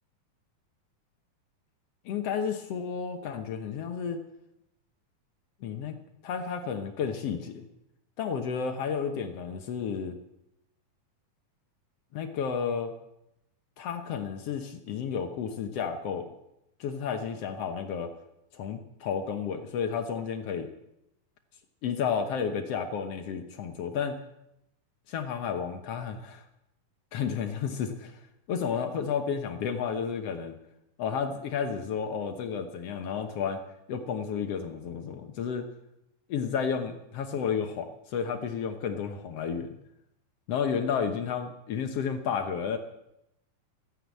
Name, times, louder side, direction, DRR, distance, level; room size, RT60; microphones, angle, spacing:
voice 1, 2.0-4.2 5.6-6.0 6.2-7.7 8.2-10.2 12.1-12.9 13.8-16.3 16.8-18.1 18.5-20.7 21.8-24.2 25.1-26.4 27.1-28.2 28.5-30.5 31.0-33.6 33.9-35.7 36.3-39.7 40.5-42.8, left 6 dB, 70° left, 6 dB, 1.5 m, -32 dB
14.5 x 9.6 x 8.4 m, 0.84 s
omnidirectional pair, 4.2 m